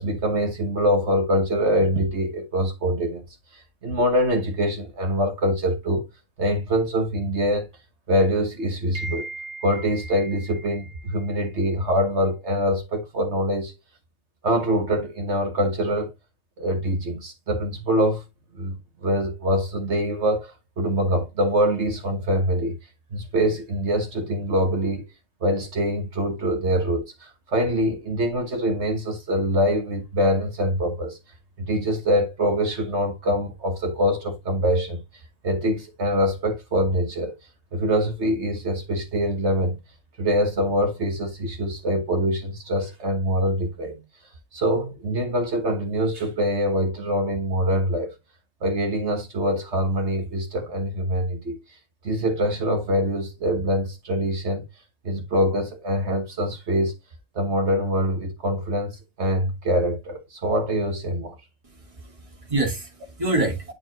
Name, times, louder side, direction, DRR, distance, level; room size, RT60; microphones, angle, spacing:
voice 1, 0.0-3.2 3.5-6.1 6.4-7.7 8.1-13.8 14.4-16.1 16.6-18.2 18.5-18.8 19.0-22.8 23.1-25.1 25.4-31.2 31.6-35.0 35.4-37.3 37.7-39.8 40.2-44.0 44.5-48.1 48.6-51.8 52.0-54.6 55.0-56.9 57.3-61.4, equal, 65° right, 1.6 m, -24 dB
voice 2, 61.7-63.7, right 2 dB, 25° right, 2.3 m, -27 dB
9.6 x 4.5 x 2.9 m
omnidirectional pair, 1.3 m